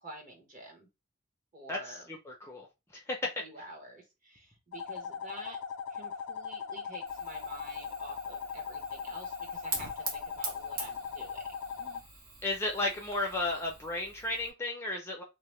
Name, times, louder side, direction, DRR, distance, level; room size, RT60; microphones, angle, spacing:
voice 1, 0.0-0.9 1.5-2.1 3.4-5.6 5.9-11.5 11.8-12.0, right 1 dB, 35° right, 2 dB, 0.9 m, -49 dB
voice 2, 1.7-2.7 3.1-3.3 12.4-15.2, left 2 dB, 10° left, 0 dB, 0.5 m, -33 dB
sound 1, 4.7-12.0, left 6 dB, 70° left, 0.3 m, -39 dB
Fire, 7.1-14.5, right 3 dB, 80° right, 0.8 m, -44 dB
2.8 x 2.0 x 3.1 m, 0.24 s
head